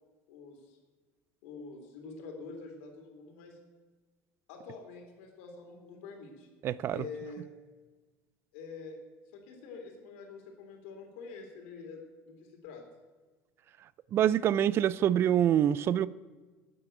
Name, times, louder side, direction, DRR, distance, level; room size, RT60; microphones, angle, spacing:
voice 1, 0.3-0.8 1.4-3.6 4.5-6.5 6.9-7.5 8.5-9.0 9.3-12.8, left 4 dB, 85° left, 3.1 m, -46 dB
voice 2, 6.6-7.0 14.1-16.1, right 10 dB, 40° right, 0.4 m, -25 dB
9.7 x 8.7 x 7.8 m
cardioid pair, 135°, 6 cm